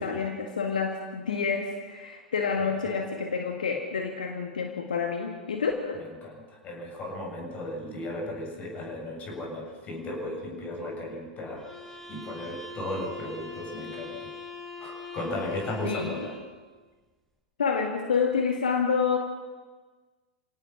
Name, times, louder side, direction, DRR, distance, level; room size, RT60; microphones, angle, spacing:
voice 1, 0.0-6.0 15.8-16.3 17.6-19.2, left 5 dB, 75° left, 3 dB, 2.0 m, -28 dB
voice 2, 6.6-11.6 12.1-14.3 14.8-16.3, left 1 dB, 35° left, 1 dB, 7.8 m, -35 dB
sound 1, 11.6-16.5, left 3 dB, 5° left, 5.9 m, -42 dB
29.5 x 17.5 x 5.9 m, 1.3 s
figure-of-eight pair, 90°, 4 cm